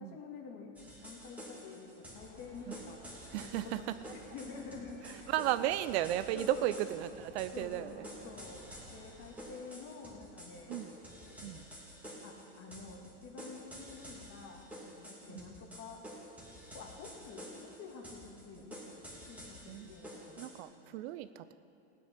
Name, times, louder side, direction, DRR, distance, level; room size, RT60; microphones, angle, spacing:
voice 1, 0.0-3.0 3.4-3.7 4.1-5.3 6.3-6.7 7.5-10.8 11.2-11.7 12.2-16.0 16.7-20.5, left 4 dB, 40° left, 1 dB, 2.1 m, -49 dB
sound 1, 0.8-20.6, equal, 5° right, 2.3 m, -50 dB
sound 2, 2.1-10.1, right 1 dB, 20° right, 2.6 m, -57 dB
voice 2, 3.3-4.2 5.0-8.0 10.7-10.9 11.4-11.6 15.3-15.4 19.7-19.9 20.4-21.5, right 13 dB, 60° right, 13 dB, 0.6 m, -35 dB
17.0 x 9.3 x 5.8 m, 2.7 s
supercardioid pair, 145°, 36 cm